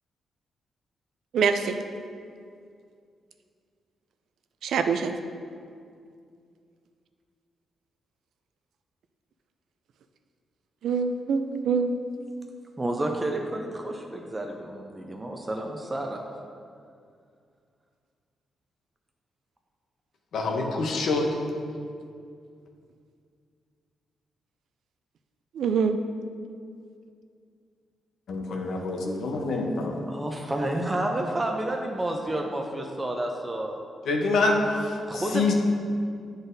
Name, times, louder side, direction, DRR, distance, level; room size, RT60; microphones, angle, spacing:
voice 1, 1.3-1.7 4.6-5.1 10.8-11.9 25.5-26.0, right 5 dB, 80° right, 7 dB, 0.3 m, -24 dB
voice 2, 12.8-16.2 30.1-33.8 35.1-35.5, right 1 dB, 20° right, 2 dB, 0.5 m, -30 dB
voice 3, 20.3-21.3 28.3-29.9 34.0-35.5, left 3 dB, 75° left, 2 dB, 0.8 m, -26 dB
9.5 x 3.9 x 2.6 m, 2.3 s
cardioid pair, 100°, 0 cm